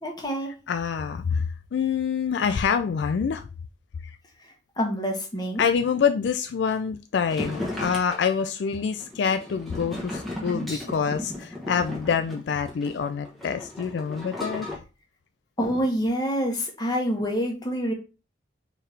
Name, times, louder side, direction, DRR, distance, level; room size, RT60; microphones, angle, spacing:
voice 1, 0.0-0.5 4.4-5.6 15.6-17.9, equal, 20° left, 1.2 m, -27 dB
voice 2, 0.7-3.5 5.6-14.7, left 6 dB, 65° left, 0.3 m, -26 dB
sound 1, 7.3-14.8, left 1 dB, ahead, 1.2 m, -35 dB
4.5 x 3.4 x 3.3 m
head